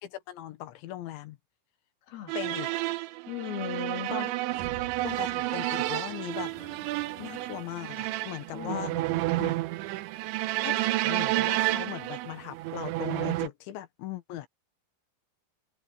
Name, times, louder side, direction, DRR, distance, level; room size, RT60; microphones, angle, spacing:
voice 1, 0.0-1.4 2.4-2.7 4.1-4.4 5.0-6.5 7.2-8.9 10.6-14.5, left 13 dB, 80° left, 3.8 m, -39 dB
sound 1, 2.3-13.5, right 18 dB, 90° right, 3.1 m, -30 dB
voice 2, 3.3-4.2 8.5-9.6, left 10 dB, 60° left, 3.9 m, -38 dB
sound 2, 4.4-6.6, right 8 dB, 65° right, 2.2 m, -46 dB
sound 3, 5.8-13.4, right 3 dB, 45° right, 8.3 m, -56 dB
omnidirectional pair, 5.3 m